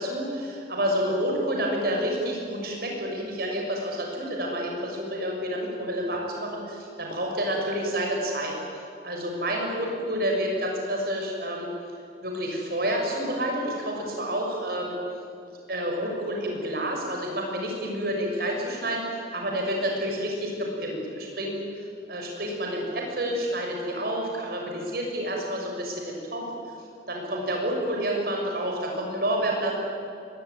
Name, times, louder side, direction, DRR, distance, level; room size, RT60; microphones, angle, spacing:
voice 1, 0.0-8.5 9.0-11.7 12.2-15.0 15.7-21.6 22.1-26.5 27.1-29.8, equal, 55° right, 0 dB, 6.8 m, -29 dB
23.5 x 21.0 x 9.8 m, 2.5 s
head